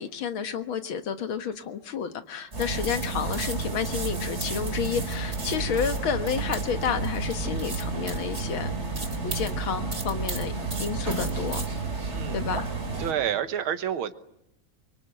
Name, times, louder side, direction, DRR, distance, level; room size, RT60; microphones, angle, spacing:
voice 1, 0.0-8.8 9.2-10.5 10.8-11.7 12.3-12.7, left 7 dB, 80° left, 9 dB, 2.2 m, -30 dB
sound 1, 2.5-13.1, right 3 dB, 30° right, 3.3 m, -31 dB
voice 2, 12.1-12.4 13.0-14.1, right 9 dB, 85° right, 11 dB, 2.0 m, -29 dB
24.5 x 24.0 x 9.0 m, 0.83 s
omnidirectional pair, 2.2 m